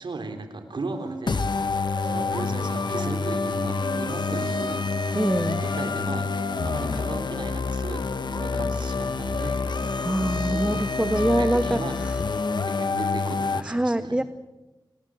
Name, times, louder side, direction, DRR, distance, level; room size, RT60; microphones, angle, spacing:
voice 1, 0.0-4.9 5.4-6.3 6.6-9.7 10.5-10.8 11.2-12.0 12.6-14.2, right 3 dB, 80° right, 6 dB, 3.9 m, -36 dB
sound 1, 0.8-1.3 1.6-7.3 8.0-10.9, right 2 dB, 55° right, 6.5 m, -41 dB
sound 2, 1.3-13.6, left 4 dB, 70° left, 1.4 m, -27 dB
voice 2, 5.1-5.6 10.0-12.2 13.6-14.2, right 1 dB, 10° right, 12 dB, 0.9 m, -25 dB
28.5 x 20.0 x 7.8 m, 1.1 s
wide cardioid pair, 70°, 8 cm